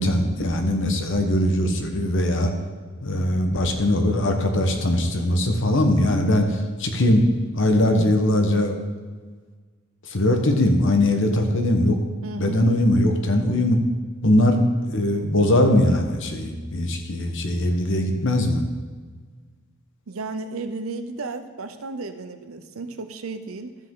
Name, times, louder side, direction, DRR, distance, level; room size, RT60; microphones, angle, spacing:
voice 1, 0.0-2.5 3.0-7.2 7.5-8.7 10.1-12.0 12.4-13.8 14.2-18.6, left 1 dB, 60° left, 4 dB, 1.2 m, -21 dB
voice 2, 12.2-12.7 20.1-23.8, right 3 dB, 75° right, 9 dB, 0.8 m, -33 dB
12.5 x 7.7 x 3.8 m, 1.5 s
head